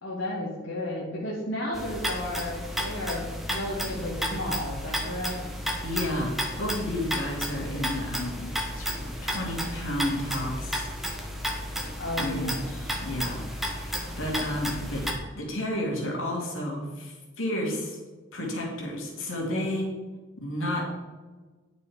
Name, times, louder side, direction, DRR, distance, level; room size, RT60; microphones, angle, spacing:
voice 1, 0.0-5.4 12.0-12.6 18.4-18.5 19.4-19.6, left 1 dB, 70° left, -5 dB, 2.4 m, -33 dB
sound 1, 1.7-15.1, equal, ahead, 1.3 m, -33 dB
voice 2, 5.8-8.5 8.8-8.9 9.2-10.9 12.2-15.0 15.3-18.0 18.3-19.8 20.4-20.8, left 1 dB, 90° left, -2 dB, 2.8 m, -31 dB
9.8 x 6.8 x 5.2 m, 1.3 s
head